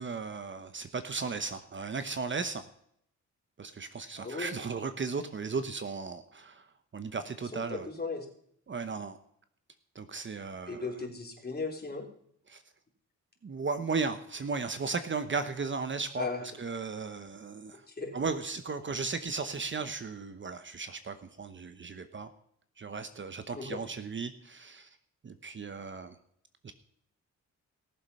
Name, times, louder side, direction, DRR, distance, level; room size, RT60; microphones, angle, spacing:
voice 1, 0.0-2.7 3.6-6.7 6.9-7.9 8.7-9.2 9.9-10.9 12.5-12.6 13.4-16.3 16.6-17.8 18.1-22.3 22.8-24.9 25.2-26.2 26.6-26.7, right 4 dB, 40° right, 10 dB, 1.0 m, -36 dB
voice 2, 4.1-4.5 7.5-8.3 10.7-12.1 16.2-16.4 17.9-18.1 23.5-23.8, left 3 dB, 30° left, 0 dB, 3.6 m, -36 dB
17.5 x 7.5 x 5.6 m, 0.67 s
cardioid pair, 90°, 30 cm